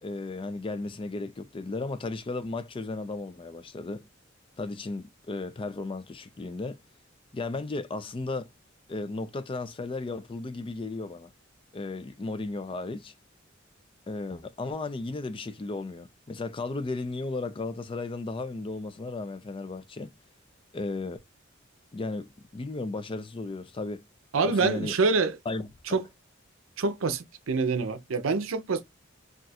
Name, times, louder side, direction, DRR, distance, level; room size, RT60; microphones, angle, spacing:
voice 1, 0.0-4.0 4.6-6.8 7.3-8.5 8.9-11.3 11.7-13.1 14.1-20.1 20.7-21.2 21.9-24.0 24.4-24.9 25.5-26.0, left 3 dB, 25° left, 0.4 m, -35 dB
voice 2, 24.3-25.4 25.9-26.0 26.8-28.8, right 4 dB, 80° right, 0.6 m, -26 dB
2.4 x 2.3 x 4.0 m
head